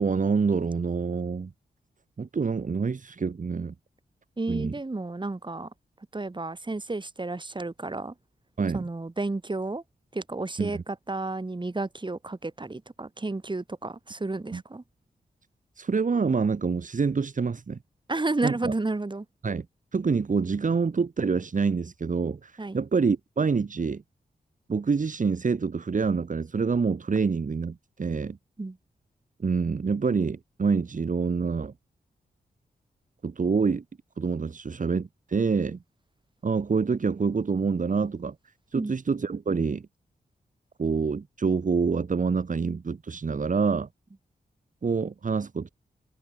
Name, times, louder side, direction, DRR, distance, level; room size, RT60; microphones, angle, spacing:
voice 1, 0.0-1.5 2.2-3.7 4.5-4.8 8.6-8.8 10.6-10.8 14.5-14.6 15.8-17.8 18.4-18.7 19.4-19.7 19.9-24.0 24.7-28.4 29.4-31.7 33.2-33.8 34.2-35.8 36.4-38.4 38.7-39.9 40.8-43.9 44.8-45.7, right 5 dB, 50° right, 1.8 m, -26 dB
voice 2, 4.4-5.7 6.1-8.1 8.7-9.8 10.1-14.8 18.1-19.3 22.6-22.8 28.6-28.8 38.7-38.9, right 2 dB, 25° right, 3.9 m, -31 dB
cardioid pair, 65°, 17 cm